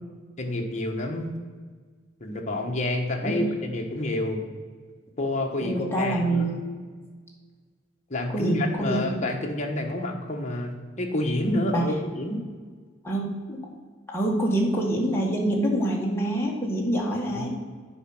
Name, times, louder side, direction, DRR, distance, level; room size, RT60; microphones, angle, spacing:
voice 1, 0.4-1.3 2.2-4.4 5.2-6.5 8.1-12.4 17.3-17.5, left 1 dB, 35° left, 1 dB, 1.3 m, -28 dB
voice 2, 5.6-6.6 8.3-9.1 11.7-11.8 13.0-13.6 14.1-17.6, right 1 dB, 10° left, -3 dB, 1.7 m, -26 dB
9.4 x 5.2 x 6.0 m, 1.5 s
head